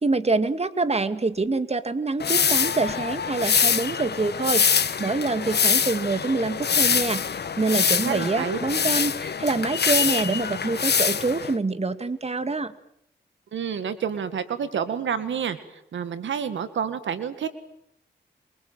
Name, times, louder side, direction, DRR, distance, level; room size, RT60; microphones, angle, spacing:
voice 1, 0.0-12.7, right 3 dB, 35° right, 11 dB, 2.3 m, -26 dB
sound 1, 2.2-11.5, left 6 dB, 60° left, 1.5 m, -24 dB
voice 2, 8.0-8.6 13.5-17.6, right 7 dB, 85° right, 11 dB, 2.1 m, -29 dB
28.0 x 24.5 x 7.7 m, 0.75 s
cardioid pair, 65°, 19 cm